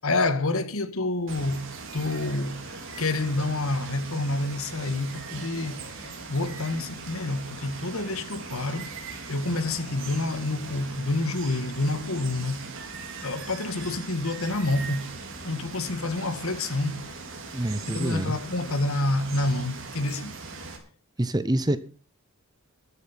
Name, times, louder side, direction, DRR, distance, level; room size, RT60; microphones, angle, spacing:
voice 1, 0.0-5.9 6.3-8.9 9.3-12.7 13.2-15.1 15.4-17.1 17.8-20.3, left 2 dB, 70° left, 1.6 m, -28 dB
Water, 1.3-20.8, right 4 dB, 55° right, 3.7 m, -40 dB
voice 2, 17.5-18.4 21.2-21.8, right 1 dB, 20° right, 0.9 m, -26 dB
13.5 x 12.0 x 5.9 m
head